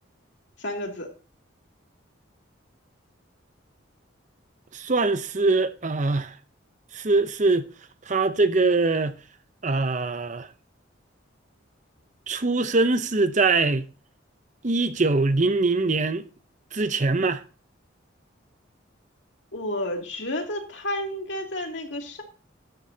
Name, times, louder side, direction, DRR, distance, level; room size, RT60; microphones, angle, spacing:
voice 1, 0.6-1.1 19.5-22.2, left 1 dB, 60° left, 2.6 m, -31 dB
voice 2, 4.7-6.3 6.9-7.7 8.1-9.2 9.6-10.5 12.3-13.9 14.6-16.2 16.7-17.4, right 3 dB, 40° right, 0.7 m, -23 dB
13.0 x 10.5 x 2.8 m
head